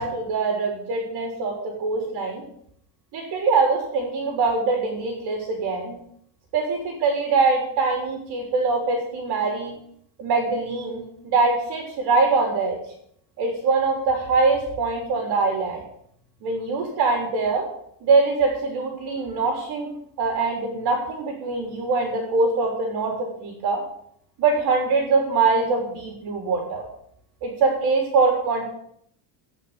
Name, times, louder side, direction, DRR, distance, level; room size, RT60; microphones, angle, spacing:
voice 1, 0.0-1.5 1.8-2.4 3.1-6.0 6.5-9.7 10.2-12.7 13.4-15.8 16.4-17.6 18.0-19.9 20.2-23.8 24.4-26.8 27.4-28.7, right 4 dB, 50° right, 1 dB, 3.7 m, -23 dB
16.0 x 6.4 x 7.5 m, 0.68 s
cardioid pair, 170°, 50 cm